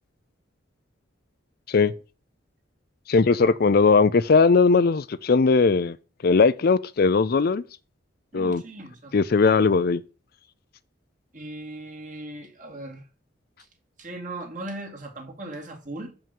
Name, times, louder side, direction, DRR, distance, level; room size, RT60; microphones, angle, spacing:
voice 1, 3.1-6.0 6.2-7.6 8.3-8.6 9.1-10.0, left 4 dB, 50° left, 0.4 m, -19 dB
voice 2, 8.3-9.2 11.3-13.0 14.0-16.1, right 2 dB, 40° right, 2.3 m, -38 dB
7.2 x 5.6 x 5.3 m
head